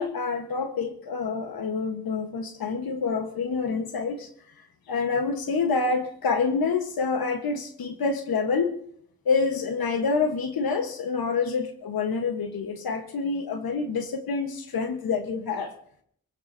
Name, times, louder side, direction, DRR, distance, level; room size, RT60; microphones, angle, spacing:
voice 1, 0.0-4.3 4.9-8.8 9.2-15.7, left 4 dB, 85° left, 6 dB, 1.2 m, -27 dB
21.0 x 17.0 x 2.7 m, 0.63 s
cardioid pair, 55°, 35 cm